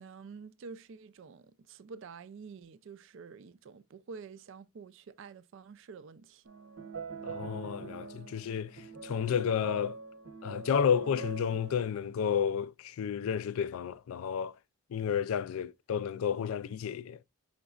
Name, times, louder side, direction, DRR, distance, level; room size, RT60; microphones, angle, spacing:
voice 1, 0.0-6.4, right 5 dB, 60° right, 0.4 m, -48 dB
sound 1, 6.5-11.9, right 4 dB, 80° right, 0.9 m, -43 dB
voice 2, 7.2-10.0 10.4-14.5 14.9-17.2, left 7 dB, 75° left, 0.3 m, -31 dB
5.1 x 3.8 x 2.3 m
head